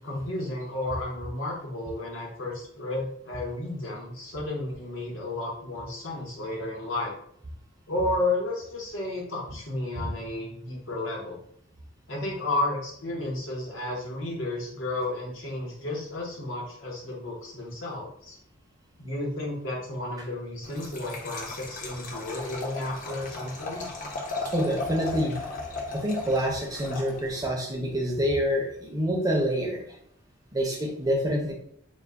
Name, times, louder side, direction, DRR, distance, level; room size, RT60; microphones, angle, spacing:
voice 1, 0.0-7.1 7.9-11.4 12.1-18.4 19.0-24.0, left 2 dB, 80° left, -3 dB, 0.9 m, -32 dB
Liquid, 20.6-27.5, left 3 dB, 40° left, 0.5 m, -36 dB
voice 2, 24.5-25.4 25.9-29.9 30.5-31.5, equal, 20° right, -1 dB, 0.4 m, -27 dB
2.2 x 2.1 x 3.4 m, 0.67 s
head